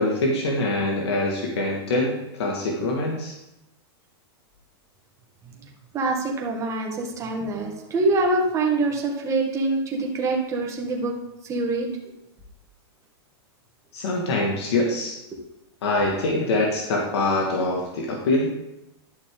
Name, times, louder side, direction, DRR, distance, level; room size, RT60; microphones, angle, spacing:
voice 1, 0.0-3.3 13.9-15.2 15.8-18.5, left 2 dB, 80° left, -1 dB, 1.9 m, -24 dB
voice 2, 5.9-11.1 11.4-11.9, right 2 dB, 20° right, 0 dB, 1.8 m, -25 dB
11.5 x 6.2 x 3.8 m, 0.90 s
supercardioid pair, 140°, 14 cm